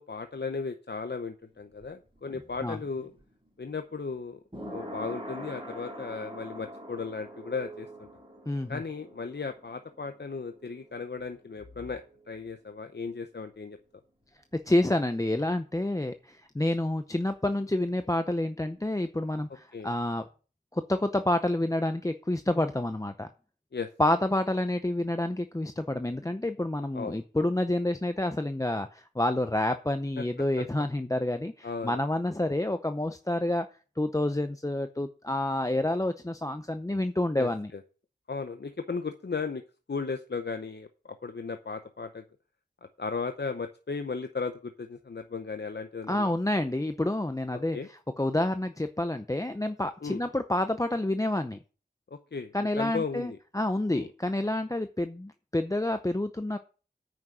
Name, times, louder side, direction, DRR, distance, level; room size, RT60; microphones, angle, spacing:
voice 1, 0.0-3.1 3.6-4.4 4.7-8.1 8.7-13.8 19.7-19.9 23.7-23.9 26.9-27.2 30.2-30.3 30.6-30.7 31.6-32.0 37.4-37.5 38.3-39.6 39.9-40.9 41.2-42.2 43.0-46.3 47.5-47.9 50.0-50.2 52.1-53.4 53.9-54.1, left 4 dB, 70° left, 7 dB, 0.8 m, -36 dB
sound 1, 1.4-13.0 13.2-13.3, right 1 dB, 25° right, 4.7 m, -45 dB
voice 2, 8.5-8.8 14.7-20.2 20.7-23.3 24.0-33.7 34.0-37.7 46.1-51.6 52.5-56.6, left 1 dB, 20° left, 8 dB, 0.7 m, -28 dB
9.1 x 6.2 x 7.4 m, 0.37 s
wide cardioid pair, 50°, 18 cm